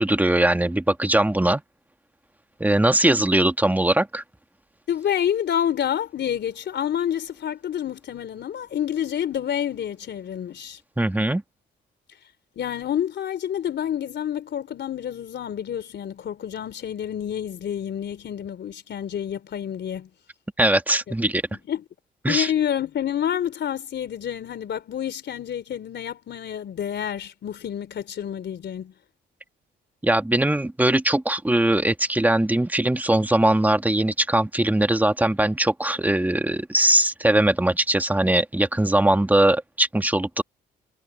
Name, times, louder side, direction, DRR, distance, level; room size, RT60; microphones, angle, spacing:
voice 1, 0.0-1.6 2.6-4.2 11.0-11.4 20.6-21.4 22.2-22.5 30.0-40.4, right 1 dB, 10° right, 1.9 m, -21 dB
voice 2, 4.9-10.8 12.5-20.1 21.1-21.2 21.7-21.8 22.3-28.9, left 9 dB, 60° left, 3.4 m, -28 dB
cardioid pair, 90°, 20 cm